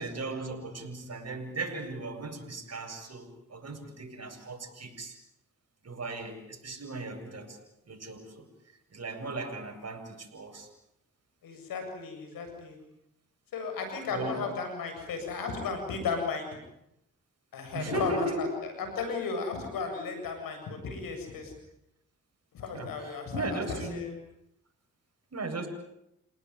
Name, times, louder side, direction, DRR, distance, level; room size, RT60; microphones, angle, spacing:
voice 1, 0.0-5.2 5.8-7.6 7.9-8.5 8.9-10.7 14.1-14.5 17.7-18.5 22.7-24.0 25.3-25.7, right 2 dB, 50° right, 4 dB, 8.0 m, -37 dB
voice 2, 11.4-12.8 13.5-16.6 17.5-21.5 22.5-24.1, left 4 dB, 80° left, 5 dB, 7.7 m, -34 dB
29.0 x 18.5 x 9.8 m, 0.81 s
supercardioid pair, 45°, 33 cm